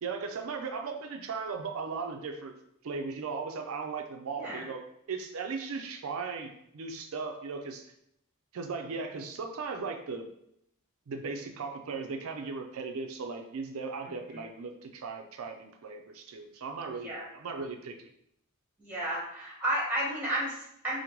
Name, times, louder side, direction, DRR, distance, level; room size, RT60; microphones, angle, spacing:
voice 1, 0.0-2.5 2.8-4.8 5.1-7.9 8.5-10.3 11.1-18.1, right 4 dB, 70° right, 4 dB, 0.4 m, -37 dB
voice 2, 4.3-4.7 14.0-14.5 16.9-17.3 18.8-21.0, right 1 dB, 10° right, -4 dB, 1.0 m, -33 dB
5.0 x 2.1 x 3.0 m, 0.75 s
head